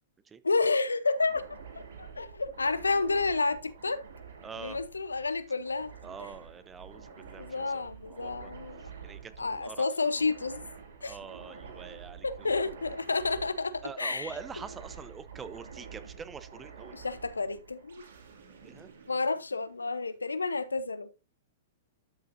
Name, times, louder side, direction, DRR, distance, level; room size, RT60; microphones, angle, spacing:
voice 1, 0.4-1.4 1.7-4.0 4.6-5.9 7.4-8.8 9.4-10.6 11.0-11.2 12.2-14.3 16.9-18.0 19.1-21.1, left 3 dB, 85° left, 0.7 m, -30 dB
sound 1, 1.1-20.0, right 6 dB, 70° right, 2.4 m, -49 dB
voice 2, 4.4-4.8 6.0-8.5 8.8-9.9 11.0-12.7 13.8-17.0 18.6-18.9, right 6 dB, 20° right, 0.8 m, -45 dB
12.0 x 6.6 x 2.6 m
figure-of-eight pair, 105°, 0 cm